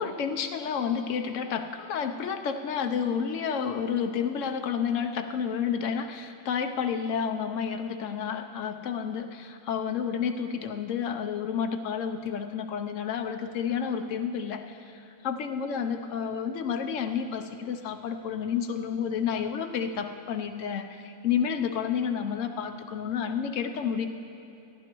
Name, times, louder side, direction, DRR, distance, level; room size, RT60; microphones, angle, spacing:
voice 1, 0.0-24.1, left 7 dB, 70° left, 6 dB, 1.0 m, -30 dB
17.5 x 11.0 x 3.0 m, 2.9 s
omnidirectional pair, 1.4 m